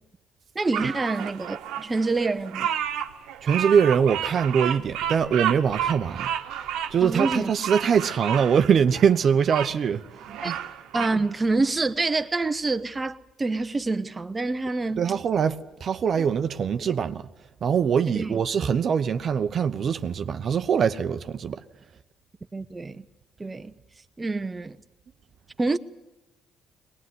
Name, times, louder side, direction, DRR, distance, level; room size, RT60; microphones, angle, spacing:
voice 1, 0.5-2.7 7.0-7.5 10.4-10.5 10.9-15.0 16.2-16.3 18.1-18.4 22.5-23.0 23.4-23.7 24.2-24.8 25.6-25.8, right 3 dB, 20° right, 1.0 m, -27 dB
Bird vocalization bird call bird song, 0.7-9.7 10.2-11.2, right 9 dB, 80° right, 1.3 m, -31 dB
voice 2, 3.4-6.3 6.9-10.6 15.0-17.3 17.6-21.6, right 7 dB, 50° right, 0.9 m, -23 dB
21.0 x 19.5 x 9.6 m
supercardioid pair, 85°, 0 cm